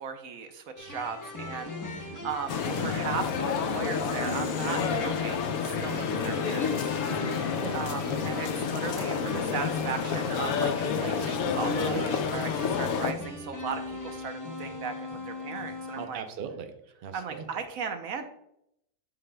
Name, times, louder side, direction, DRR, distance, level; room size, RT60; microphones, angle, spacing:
voice 1, 0.0-6.9 7.7-16.2 17.1-18.2, right 6 dB, 75° right, 7 dB, 1.1 m, -37 dB
sound 1, 0.8-16.1, left 2 dB, 25° left, 0.5 m, -41 dB
sound 2, 2.5-13.1, left 6 dB, 85° left, 1.1 m, -29 dB
Wind instrument woodwind instrument, 6.2-12.1, right 7 dB, 20° right, 1.4 m, -52 dB
voice 2, 7.1-7.8 11.9-12.1 15.9-16.7 17.0-17.6, right 6 dB, 55° right, 7 dB, 0.6 m, -39 dB
11.0 x 3.9 x 2.2 m, 0.78 s
omnidirectional pair, 1.5 m